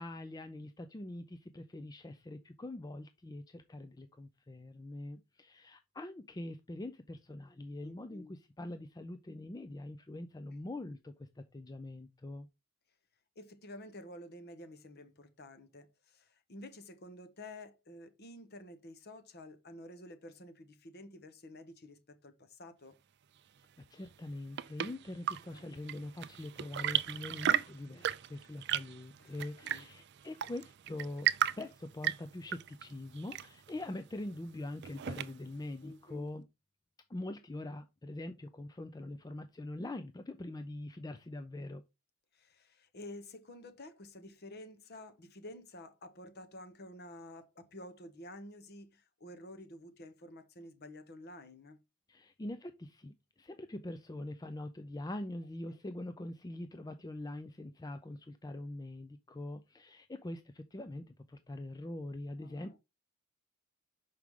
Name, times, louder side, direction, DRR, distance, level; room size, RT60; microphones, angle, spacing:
voice 1, 0.0-12.5 23.8-31.3 31.6-36.4 37.1-41.8 52.1-62.8, left 1 dB, 15° left, 0.4 m, -43 dB
voice 2, 7.8-8.3 13.4-23.0 25.5-25.7 29.2-29.9 35.8-36.3 42.3-51.8 55.7-55.8 62.4-62.8, left 1 dB, 45° left, 1.0 m, -51 dB
Chirp tweet / Engine / Tap, 24.1-35.6, right 11 dB, 50° right, 0.4 m, -36 dB
6.1 x 4.7 x 3.6 m
head